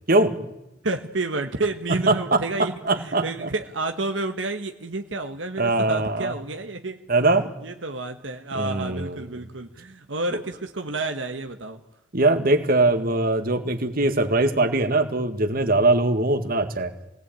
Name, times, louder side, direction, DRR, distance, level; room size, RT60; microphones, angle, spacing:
voice 1, 0.8-7.0 7.6-11.8, right 2 dB, 80° right, 6 dB, 1.3 m, -30 dB
voice 2, 2.1-2.4 2.9-3.5 5.6-6.3 7.1-7.5 8.5-9.2 12.1-16.9, right 2 dB, 50° right, 8 dB, 2.0 m, -21 dB
24.5 x 18.0 x 9.0 m, 0.91 s
head